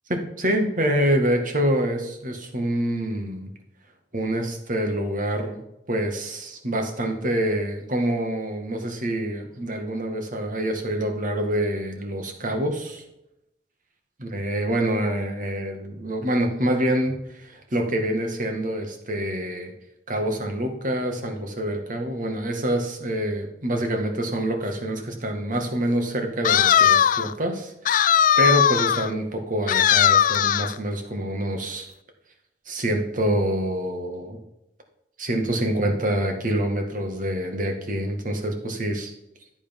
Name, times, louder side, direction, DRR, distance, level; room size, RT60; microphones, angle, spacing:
voice 1, 0.1-3.5 4.1-5.6 5.9-13.0 14.2-19.7 20.1-27.7 28.4-31.9 32.7-34.4 35.2-39.1, right 1 dB, 50° right, 4 dB, 2.0 m, -26 dB
sound 1, 26.4-27.3 27.9-29.1 29.7-30.8, left 9 dB, 50° left, 0.4 m, -18 dB
13.0 x 8.4 x 5.4 m, 0.87 s
head